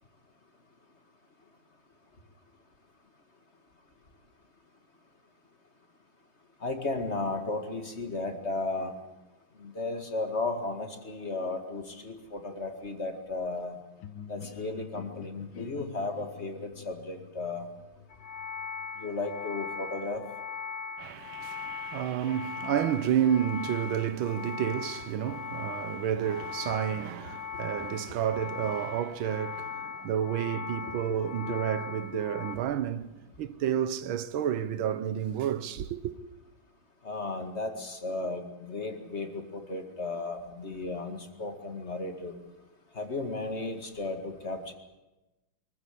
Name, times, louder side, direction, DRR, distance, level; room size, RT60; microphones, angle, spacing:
voice 1, 6.6-8.9 9.6-13.8 14.3-17.7 19.0-20.2 31.4-31.5 37.0-42.4 42.9-44.7, left 3 dB, 35° left, 2.2 m, -34 dB
sound 1, 14.0-19.6, left 8 dB, 75° left, 1.7 m, -47 dB
sound 2, 18.1-32.6, left 6 dB, 60° left, 2.2 m, -39 dB
voice 2, 21.0-36.1, right 9 dB, 80° right, 1.7 m, -30 dB
23.5 x 14.5 x 9.9 m
omnidirectional pair, 2.2 m